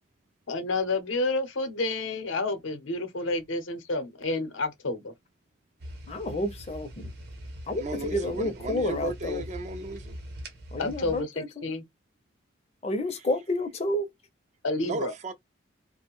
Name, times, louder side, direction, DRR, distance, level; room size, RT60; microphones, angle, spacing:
voice 1, 0.5-5.1 10.8-11.8 14.6-15.1, left 2 dB, 80° left, 0.7 m, -30 dB
sound 1, 5.8-11.2, equal, 55° right, 0.8 m, -42 dB
voice 2, 6.1-7.1 7.7-9.4 10.7-11.7 12.8-14.1, left 1 dB, 30° left, 0.5 m, -30 dB
voice 3, 7.8-10.2 14.8-15.3, right 2 dB, 35° right, 0.3 m, -35 dB
2.5 x 2.1 x 2.9 m
head